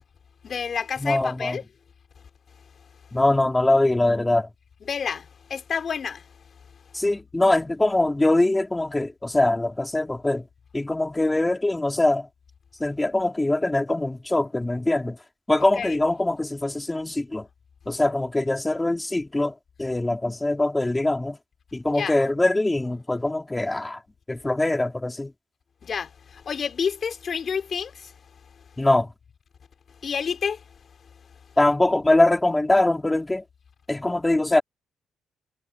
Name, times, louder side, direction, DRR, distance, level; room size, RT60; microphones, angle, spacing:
voice 1, 0.4-1.6 4.9-6.2 15.8-16.0 21.9-22.1 25.8-28.1 30.0-30.6, left 6 dB, 50° left, 4.2 m, -29 dB
voice 2, 1.0-1.6 3.1-4.5 6.9-10.5 10.7-12.3 12.8-15.2 15.5-17.5 17.9-19.5 19.8-21.4 21.7-24.0 24.3-25.3 28.8-29.1 31.6-33.4 33.9-34.6, left 2 dB, 15° left, 4.0 m, -22 dB
cardioid pair, 90°, 0 cm